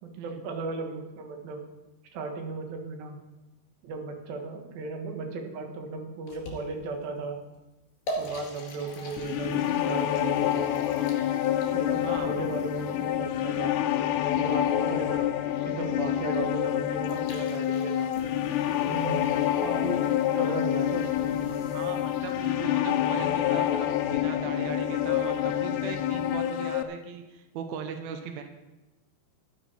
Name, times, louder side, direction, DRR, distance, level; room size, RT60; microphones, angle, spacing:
voice 1, 0.0-1.6 2.1-3.2 3.8-7.4 8.2-10.7 11.7-13.8 14.4-15.3 15.6-18.1 18.9-19.3 19.6-20.0 20.3-21.6, right 4 dB, 60° right, 3 dB, 2.9 m, -36 dB
sound 1, 6.3-7.0 7.5-7.6 8.1-13.3 16.7-16.8 17.0-22.5, equal, 60° left, 4.4 m, -44 dB
sound 2, 9.2-26.8, left 11 dB, 85° left, 2.5 m, -27 dB
sound 3, 12.0-20.1, equal, 35° right, 1.9 m, -52 dB
voice 2, 12.0-12.3 21.7-28.4, right 7 dB, 85° right, 6 dB, 2.1 m, -39 dB
13.0 x 11.5 x 4.6 m, 1.1 s
omnidirectional pair, 5.6 m